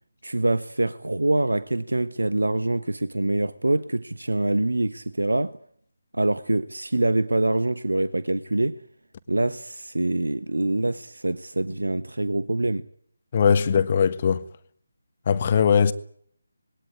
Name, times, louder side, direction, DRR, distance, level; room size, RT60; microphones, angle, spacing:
voice 1, 0.2-5.6 6.1-8.8 9.3-12.8, right 2 dB, 80° right, 1.2 m, -25 dB
voice 2, 13.3-14.4 15.3-15.9, left 7 dB, 35° left, 1.5 m, -20 dB
26.0 x 20.5 x 9.6 m
figure-of-eight pair, 155°, 0 cm